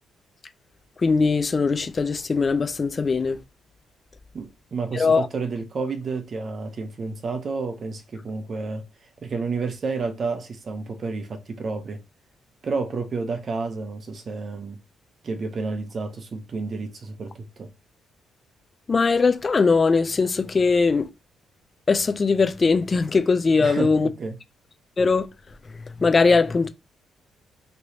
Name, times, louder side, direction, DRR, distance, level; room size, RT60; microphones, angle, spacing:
voice 1, 1.0-3.4 4.9-5.3 18.9-21.1 21.9-24.1 25.0-25.3 25.7-26.7, left 4 dB, 35° left, 0.4 m, -20 dB
voice 2, 4.3-12.0 12.6-14.8 15.2-17.7 23.6-24.4, right 4 dB, 45° right, 0.7 m, -30 dB
3.0 x 3.0 x 2.8 m
cardioid pair, 90°, 0 cm